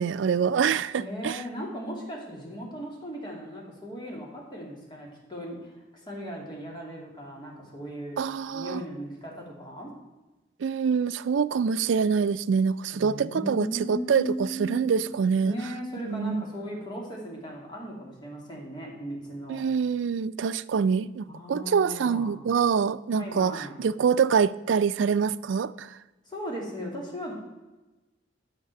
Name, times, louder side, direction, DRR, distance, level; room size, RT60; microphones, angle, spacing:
voice 1, 0.0-1.4 8.2-8.8 10.6-15.5 16.1-16.5 19.5-26.0, right 6 dB, 80° right, 0.4 m, -25 dB
voice 2, 1.0-8.2 8.5-9.9 12.9-15.0 15.4-19.6 21.3-22.4 23.2-23.8 26.3-27.3, equal, 25° left, 2.5 m, -37 dB
10.0 x 6.5 x 5.9 m
head